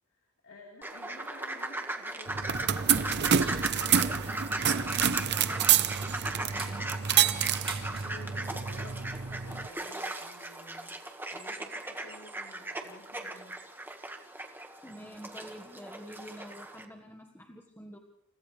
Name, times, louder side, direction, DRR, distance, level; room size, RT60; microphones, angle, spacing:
voice 1, 0.1-7.0 8.0-13.6, left 2 dB, 65° left, -1 dB, 4.1 m, -54 dB
sound 1, 0.8-16.9, right 2 dB, 10° right, 1.7 m, -38 dB
sound 2, 2.3-9.7, right 8 dB, 55° right, 0.8 m, -28 dB
sound 3, 2.7-6.0 6.4-8.1, right 4 dB, 25° right, 3.9 m, -46 dB
voice 2, 5.2-5.9 6.4-7.6 14.8-18.0, equal, 10° left, 2 dB, 1.6 m, -48 dB
29.5 x 29.5 x 3.4 m, 0.75 s
head